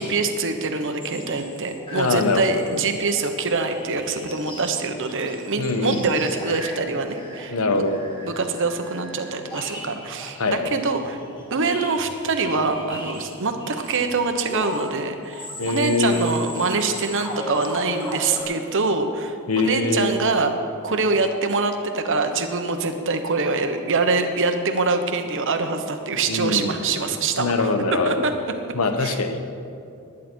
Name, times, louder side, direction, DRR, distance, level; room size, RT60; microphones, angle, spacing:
voice 1, 0.0-7.5 8.2-11.2 11.5-20.5 20.8-27.7 28.0-28.3 29.0-29.2, right 3 dB, 60° right, 6 dB, 1.2 m, -24 dB
sound 1, 1.0-18.4, left 1 dB, 25° left, 2.9 m, -37 dB
voice 2, 1.9-2.8 5.6-6.2 7.5-8.0 10.4-10.7 15.6-16.4 19.5-20.2 26.3-26.8 27.4-28.3 28.7-29.4, left 3 dB, 75° left, 6 dB, 1.0 m, -23 dB
19.5 x 10.0 x 4.6 m, 2.5 s
head